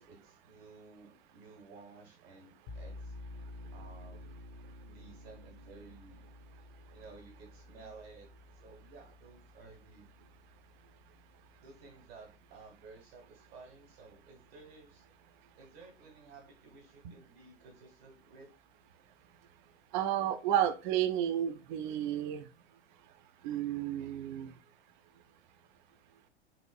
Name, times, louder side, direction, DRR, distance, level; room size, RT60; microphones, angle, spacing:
voice 1, 0.0-3.1 3.7-4.4 4.8-6.2 6.9-8.3 8.5-10.1 11.6-15.0 15.6-18.5, right 4 dB, 60° right, 1.4 m, -54 dB
sound 1, 2.7-14.0, left 2 dB, 50° left, 1.0 m, -52 dB
voice 2, 19.9-22.4 23.4-24.5, right 11 dB, 45° right, 0.4 m, -31 dB
4.1 x 2.5 x 2.3 m
figure-of-eight pair, 85°, 33 cm